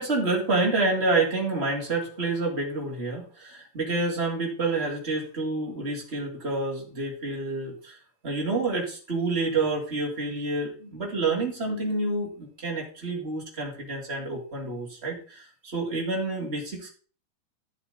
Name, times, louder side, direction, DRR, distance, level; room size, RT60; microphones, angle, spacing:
voice 1, 0.0-8.0 8.2-16.9, right 3 dB, 20° right, -1 dB, 2.4 m, -28 dB
13.5 x 6.8 x 3.9 m, 0.40 s
omnidirectional pair, 4.5 m